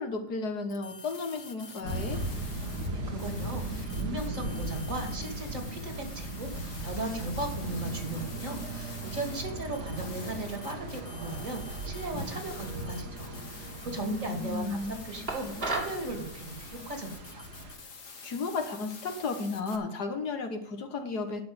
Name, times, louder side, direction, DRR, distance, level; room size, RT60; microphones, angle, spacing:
voice 1, 0.0-2.2 14.0-15.0 15.4-15.7 18.2-21.4, left 3 dB, 80° left, 6 dB, 2.0 m, -34 dB
sound 1, 0.7-2.9 3.2-19.8, left 4 dB, 55° left, 1.8 m, -47 dB
sound 2, 1.8-17.7, right 1 dB, 80° right, 2.8 m, -38 dB
voice 2, 2.9-14.8 15.0-17.4, right 2 dB, 55° right, 3 dB, 2.8 m, -37 dB
sound 3, 15.3-16.0, right 2 dB, 35° right, 2.0 m, -32 dB
11.0 x 6.4 x 7.9 m, 0.66 s
omnidirectional pair, 1.7 m